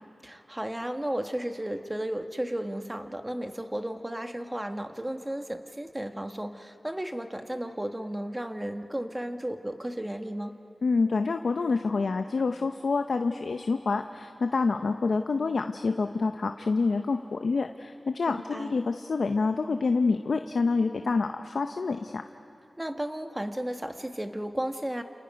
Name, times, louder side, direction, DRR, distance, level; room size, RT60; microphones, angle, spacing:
voice 1, 0.2-10.6 18.3-18.7 22.8-25.0, right 1 dB, 15° right, 6 dB, 1.3 m, -34 dB
voice 2, 10.8-22.2, left 4 dB, 70° left, 7 dB, 0.7 m, -27 dB
30.0 x 28.5 x 5.2 m, 2.8 s
wide cardioid pair, 85°, 0 cm